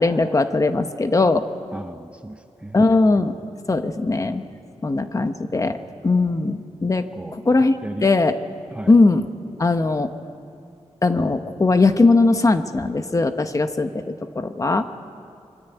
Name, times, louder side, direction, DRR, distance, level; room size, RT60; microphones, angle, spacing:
voice 1, 0.0-1.5 2.7-3.4 3.7-4.4 4.8-5.8 6.0-7.0 7.3-7.8 8.0-8.3 8.9-9.2 9.6-10.1 11.0-14.9, left 3 dB, 30° left, 8 dB, 1.1 m, -19 dB
voice 2, 1.7-2.8 7.1-7.4 7.8-8.1 8.7-8.9, right 1 dB, 10° right, 8 dB, 0.7 m, -35 dB
24.0 x 23.5 x 9.2 m, 2.4 s
wide cardioid pair, 155°, 12 cm